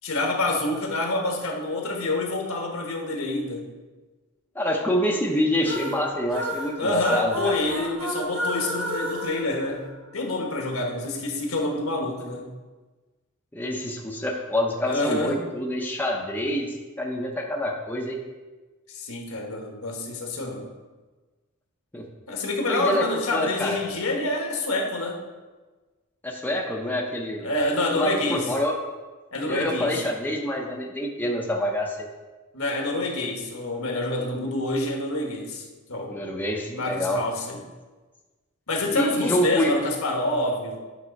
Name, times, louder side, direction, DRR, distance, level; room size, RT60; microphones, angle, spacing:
voice 1, 0.0-3.7 6.8-9.8 10.1-12.5 14.9-15.4 18.9-20.7 22.3-25.3 27.4-28.5 29.3-30.0 32.5-35.6 35.9-36.2 36.7-37.6 38.7-40.8, left 2 dB, 80° left, 1 dB, 1.4 m, -27 dB
voice 2, 4.5-7.5 13.5-16.7 17.0-18.2 21.9-22.0 22.6-23.1 23.3-23.8 26.2-27.5 27.8-28.8 29.5-32.1 36.1-37.2 38.9-39.7, equal, 10° left, 0 dB, 0.7 m, -26 dB
sound 1, 5.6-10.4, equal, 70° right, 1.6 m, -32 dB
9.5 x 3.7 x 5.2 m, 1.3 s
head